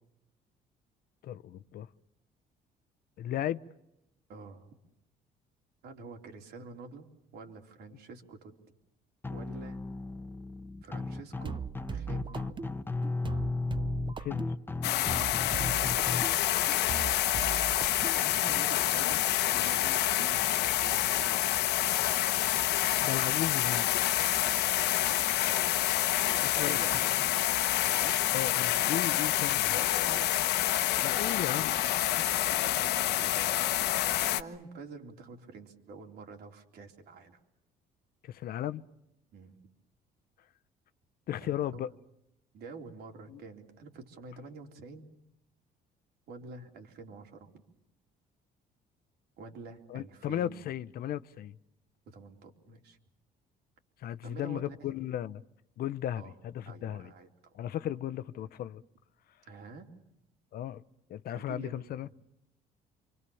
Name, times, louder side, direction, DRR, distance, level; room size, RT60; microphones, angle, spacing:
voice 1, 1.2-1.9 3.2-3.6 14.2-14.4 23.0-24.0 26.4-26.8 28.3-29.8 31.0-31.8 32.1-32.3 38.2-38.8 41.3-41.9 43.3-43.4 49.9-51.6 54.0-55.4 55.8-57.1 57.5-58.8 60.5-60.8 61.1-62.1, left 11 dB, 65° left, 0.9 m, -35 dB
voice 2, 4.3-4.7 5.8-7.1 7.3-8.5 9.3-9.8 10.8-12.6 15.3-16.6 18.1-21.7 24.4-25.7 26.3-27.3 27.9-28.2 29.6-30.6 32.5-33.6 34.0-37.4 39.3-39.6 41.4-41.9 42.5-45.1 46.3-47.5 49.4-50.6 52.1-53.0 54.2-55.0 56.1-56.3 56.6-57.6 59.5-59.9 61.3-62.0, right 4 dB, 70° right, 3.9 m, -48 dB
sound 1, 9.2-16.2, left 3 dB, 10° left, 1.2 m, -35 dB
sound 2, 11.4-18.6, right 7 dB, 30° right, 0.9 m, -39 dB
sound 3, 14.8-34.4, left 13 dB, 80° left, 1.1 m, -28 dB
27.5 x 25.0 x 7.1 m
cardioid pair, 110°, 17 cm